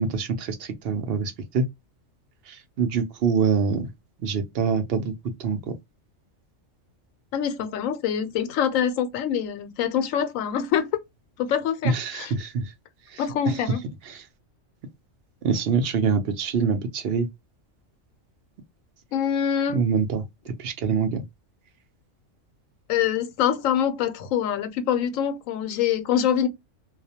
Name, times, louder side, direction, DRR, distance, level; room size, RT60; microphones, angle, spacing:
voice 1, 0.0-1.6 2.5-3.9 4.2-5.1 5.4-5.7 11.8-12.7 13.1-13.6 14.1-14.3 15.4-17.3 19.7-21.2, right 5 dB, 60° right, 0.7 m, -25 dB
voice 2, 7.3-10.9 11.4-12.3 13.2-13.8 19.1-19.8 22.9-26.5, left 9 dB, 85° left, 1.0 m, -25 dB
2.3 x 2.1 x 2.6 m
omnidirectional pair, 1.3 m